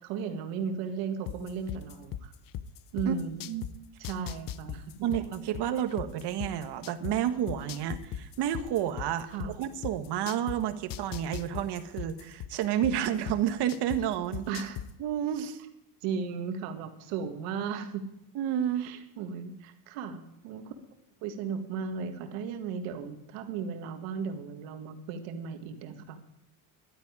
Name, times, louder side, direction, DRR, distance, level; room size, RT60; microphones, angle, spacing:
voice 1, 0.0-2.3 2.9-3.5 4.0-4.9 9.3-9.5 14.5-14.8 16.0-18.1 18.8-20.8 21.2-26.2, right 6 dB, 85° right, 7 dB, 2.0 m, -36 dB
sound 1, 1.3-3.7 4.0-7.1 7.5-10.6 10.9-14.0 14.3-14.9, left 11 dB, 45° left, 0.8 m, -37 dB
voice 2, 5.0-14.5 15.0-15.6 18.3-18.9, right 10 dB, 60° right, 9 dB, 1.5 m, -30 dB
11.5 x 9.9 x 9.7 m, 0.82 s
cardioid pair, 130°, 46 cm